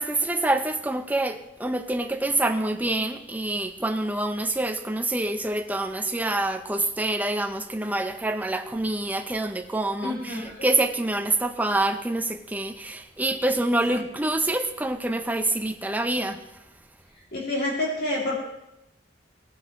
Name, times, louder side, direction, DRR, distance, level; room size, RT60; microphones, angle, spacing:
voice 1, 0.0-16.4, right 2 dB, 10° right, 0.6 m, -26 dB
voice 2, 10.0-10.7 17.3-18.3, left 1 dB, 60° left, 2.5 m, -28 dB
17.5 x 9.8 x 3.0 m
head